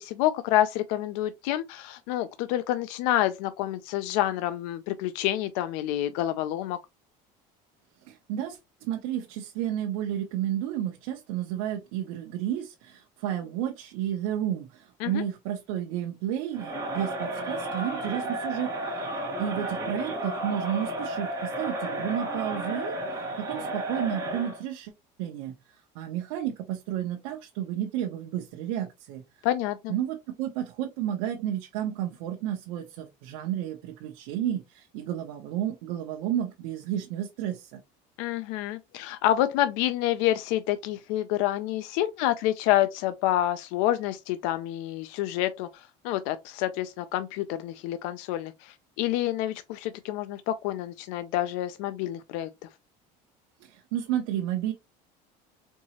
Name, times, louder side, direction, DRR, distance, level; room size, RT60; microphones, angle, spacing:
voice 1, 0.0-6.8 15.0-15.2 29.4-29.9 38.2-52.5, left 13 dB, 80° left, 0.5 m, -28 dB
voice 2, 8.0-19.1 19.4-24.9 25.2-25.5 25.9-29.2 29.9-37.8 53.6-54.7, right 11 dB, 90° right, 0.8 m, -32 dB
Crowd, 16.5-24.6, right 1 dB, 20° right, 1.4 m, -33 dB
4.5 x 2.8 x 2.9 m
cardioid pair, 160°, 17 cm